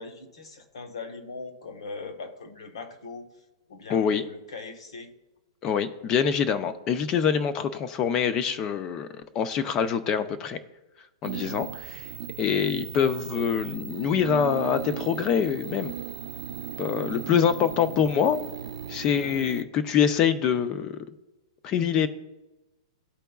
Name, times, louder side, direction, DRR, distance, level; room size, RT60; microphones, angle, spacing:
voice 1, 0.0-3.3 3.7-5.1, left 4 dB, 70° left, 7 dB, 1.2 m, -40 dB
voice 2, 3.9-4.2 5.6-9.1 9.3-10.6 11.2-12.1 12.4-15.9 16.8-18.4 18.9-21.0 21.6-22.1, left 7 dB, 15° left, 12 dB, 0.3 m, -25 dB
sound 1, 11.2-19.6, right 9 dB, 55° right, 0.4 m, -37 dB
12.5 x 4.5 x 2.3 m, 1.0 s
hypercardioid pair, 180°, 3 cm